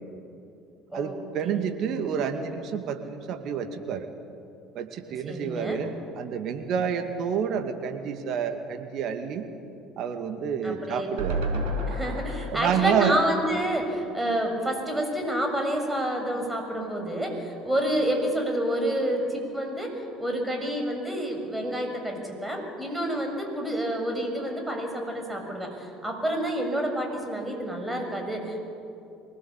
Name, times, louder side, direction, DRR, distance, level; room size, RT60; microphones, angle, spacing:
voice 1, 0.9-4.1 4.7-9.5 10.0-11.5 12.5-13.1, right 7 dB, 50° right, 6 dB, 2.2 m, -29 dB
voice 2, 5.2-5.8 10.6-11.1 11.9-28.6, right 1 dB, 10° right, 3 dB, 6.7 m, -29 dB
sound 1, 11.2-14.4 14.8-14.9 15.1-15.2, right 1 dB, 70° right, 5.7 m, -32 dB
24.5 x 19.5 x 8.4 m, 2.6 s
figure-of-eight pair, 60°, 0 cm